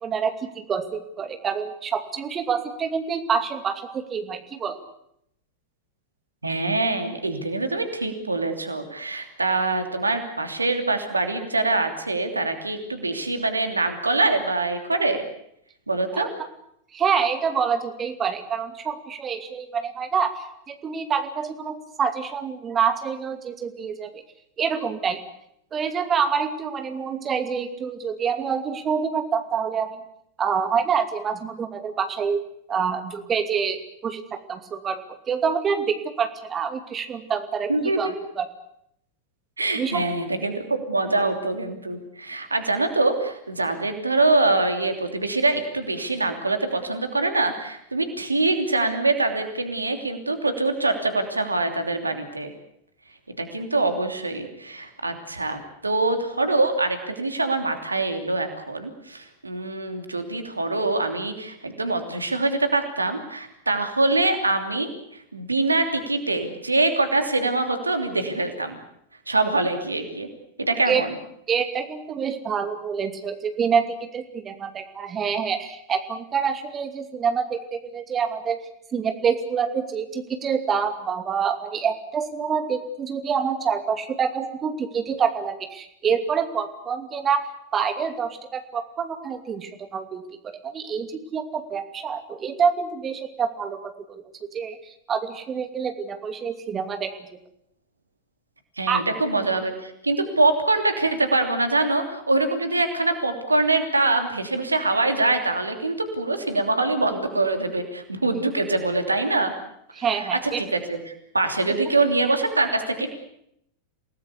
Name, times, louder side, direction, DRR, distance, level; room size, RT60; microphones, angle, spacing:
voice 1, 0.0-4.8 16.1-16.2 16.9-24.2 24.6-25.2 25.7-30.0 30.4-32.4 32.7-38.5 39.8-40.0 70.9-71.0 71.5-78.6 78.9-87.5 87.7-90.2 90.6-94.2 94.5-97.3 98.9-99.0 110.0-110.6, right 6 dB, 25° right, 7 dB, 2.6 m, -26 dB
voice 2, 6.4-15.2 15.9-16.3 37.7-38.1 39.6-52.5 53.4-68.8 69.3-70.3 70.6-71.1 98.8-109.5 110.1-110.3 110.6-113.2, right 2 dB, 80° right, 7 dB, 3.0 m, -24 dB
28.5 x 18.5 x 8.4 m, 0.75 s
figure-of-eight pair, 90°, 0 cm